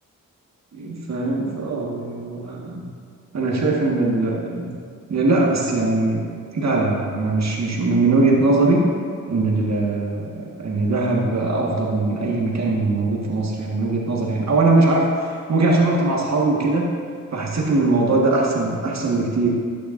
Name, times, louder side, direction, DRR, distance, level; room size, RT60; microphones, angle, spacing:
voice 1, 0.7-2.8 3.3-4.7 5.1-6.2 6.5-8.8 9.3-16.9 17.3-19.5, right 2 dB, 50° right, -2 dB, 1.8 m, -21 dB
12.0 x 6.7 x 2.6 m, 2.2 s
supercardioid pair, 50°, 34 cm